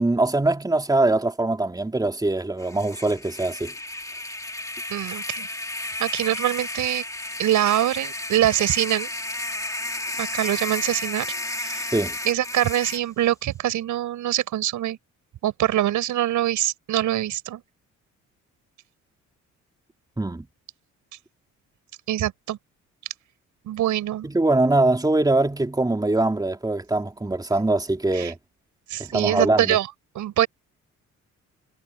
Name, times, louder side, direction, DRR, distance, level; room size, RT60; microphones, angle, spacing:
voice 1, 0.0-3.7 11.9-12.2 20.2-20.4 24.2-28.4 29.0-29.8, right 2 dB, 15° right, 3.3 m, -22 dB
sound 1, 2.6-13.0, left 2 dB, 10° left, 2.8 m, -32 dB
voice 2, 4.9-5.5 6.0-7.0 7.4-9.1 10.2-11.3 11.5-11.9 12.2-15.0 15.4-17.6 22.1-22.6 23.6-24.3 28.1-28.3 28.9-29.9 30.2-30.5, right 13 dB, 80° right, 5.6 m, -24 dB
cardioid pair, 90°, 30 cm